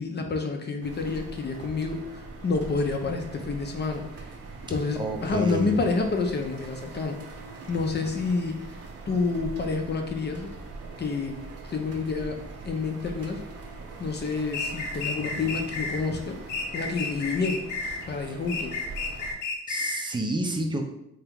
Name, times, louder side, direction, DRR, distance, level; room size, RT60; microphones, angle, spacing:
voice 1, 0.0-4.0 4.7-7.2 7.7-8.6 9.1-10.5 11.0-11.4 11.7-13.4 14.0-16.4 16.7-17.6 18.1-18.8, left 4 dB, 35° left, 4 dB, 0.6 m, -28 dB
sound 1, 0.8-19.3, right 3 dB, 50° right, 0.8 m, -42 dB
voice 2, 5.0-5.7 19.7-20.8, right 1 dB, 15° right, 3 dB, 0.6 m, -29 dB
sound 2, 14.5-16.0 16.5-18.0 18.5-20.1, left 3 dB, 90° left, 0.7 m, -32 dB
3.4 x 2.9 x 3.5 m, 0.80 s
cardioid pair, 90°, 30 cm